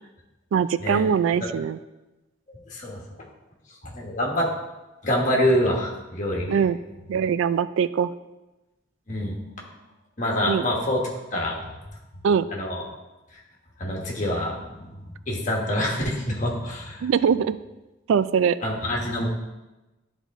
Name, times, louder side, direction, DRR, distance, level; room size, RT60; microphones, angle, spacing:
voice 1, 0.5-1.8 6.5-6.8 7.1-8.1 10.5-10.6 12.2-12.5 17.0-17.6 18.1-18.6, right 7 dB, 85° right, 15 dB, 0.3 m, -22 dB
voice 2, 2.5-3.0 3.8-4.5 5.0-6.6 9.1-9.4 10.2-11.0 11.3-11.6 12.5-12.8 13.8-17.1 18.6-19.3, left 1 dB, 40° left, -2 dB, 1.3 m, -26 dB
11.0 x 3.6 x 3.7 m, 1.1 s
head